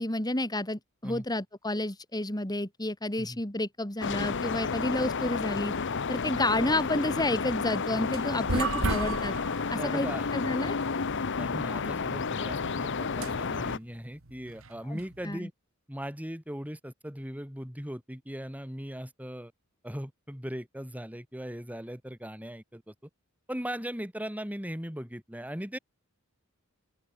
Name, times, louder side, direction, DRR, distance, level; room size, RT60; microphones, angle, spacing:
voice 1, 0.0-5.7 6.1-9.3 9.7-10.8 14.8-15.5, left 1 dB, 20° left, 3.1 m, -30 dB
sound 1, 4.0-13.8, left 5 dB, 55° left, 0.9 m, -31 dB
sound 2, 7.8-15.3, right 3 dB, 65° right, 1.9 m, -36 dB
voice 2, 9.7-10.3 11.4-15.5 15.9-19.5 19.8-22.9 23.5-25.8, equal, 5° right, 3.8 m, -39 dB
open air
head